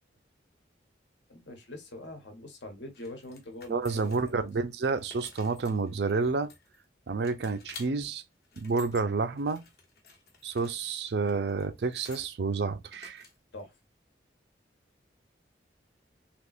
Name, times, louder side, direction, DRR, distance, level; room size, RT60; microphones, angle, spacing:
voice 1, 1.3-4.5 13.5-13.7, left 1 dB, 80° left, 1.1 m, -44 dB
sound 1, 2.9-4.5 4.9-6.9 7.2-7.9 8.3-9.0 9.4-12.3 12.9-13.6, left 4 dB, 55° left, 1.0 m, -52 dB
voice 2, 3.7-6.5 7.1-8.2 8.6-9.6 10.4-13.2, right 4 dB, 65° right, 0.4 m, -29 dB
3.5 x 2.9 x 2.4 m
head